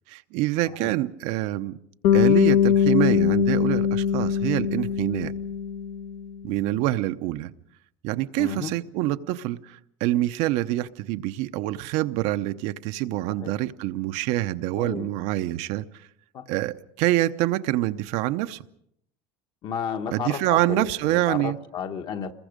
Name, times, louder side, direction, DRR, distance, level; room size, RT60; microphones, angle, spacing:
voice 1, 0.1-1.8 2.1-5.3 6.4-7.5 8.0-16.1 16.5-18.6 20.1-21.6, right 16 dB, 65° right, 10 dB, 0.8 m, -26 dB
Bass guitar, 2.0-6.3, left 8 dB, 75° left, 1.6 m, -21 dB
voice 2, 8.4-8.7 13.4-13.5 14.7-15.1 16.3-16.5 19.6-22.3, left 7 dB, 35° left, 7 dB, 1.2 m, -32 dB
27.0 x 21.5 x 5.2 m, 0.72 s
cardioid pair, 155°, 13 cm